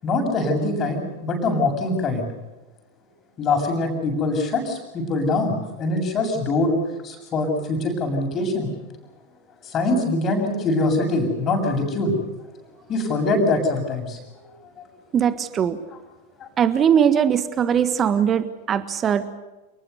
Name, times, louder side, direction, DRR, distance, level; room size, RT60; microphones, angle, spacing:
voice 1, 0.0-2.3 3.4-6.8 7.0-8.7 9.6-12.1 12.9-14.2 16.4-16.5, left 2 dB, 30° left, 4 dB, 7.3 m, -23 dB
voice 2, 15.1-15.8 16.6-19.4, right 8 dB, 25° right, 12 dB, 1.5 m, -20 dB
29.5 x 20.0 x 6.9 m, 1.1 s
figure-of-eight pair, 90°, 0 cm